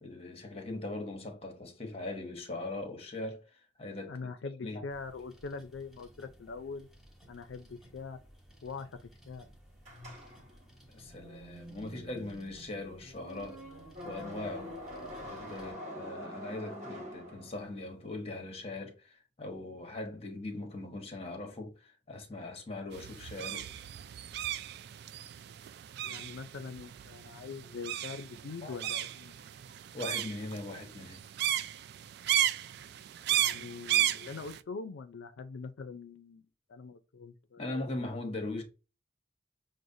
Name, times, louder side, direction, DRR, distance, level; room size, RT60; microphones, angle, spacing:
voice 1, 0.0-4.2 4.6-4.8 10.9-13.6 14.0-14.8 15.2-23.7 28.6-28.8 29.9-31.3 37.6-38.6, left 2 dB, 35° left, 0.9 m, -40 dB
voice 2, 4.1-6.9 7.3-8.2 8.6-9.5 26.0-29.3 33.3-37.7, left 4 dB, 90° left, 0.4 m, -43 dB
sound 1, 4.9-15.7, equal, ahead, 1.0 m, -58 dB
sound 2, 9.8-17.9, equal, 40° right, 1.3 m, -46 dB
sound 3, 22.9-34.6, right 11 dB, 60° right, 0.3 m, -34 dB
6.2 x 2.1 x 2.6 m
head